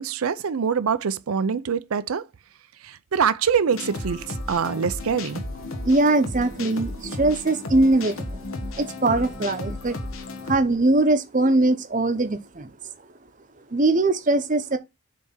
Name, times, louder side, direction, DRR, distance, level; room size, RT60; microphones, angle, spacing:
voice 1, 0.0-2.3 2.8-5.4, right 6 dB, 90° right, 0.5 m, -24 dB
sound 1, 3.7-10.6, left 2 dB, 80° left, 1.3 m, -34 dB
voice 2, 5.8-8.4 8.7-10.0 10.4-12.7 13.7-14.8, right 2 dB, 40° right, 0.8 m, -21 dB
7.5 x 3.5 x 5.5 m
head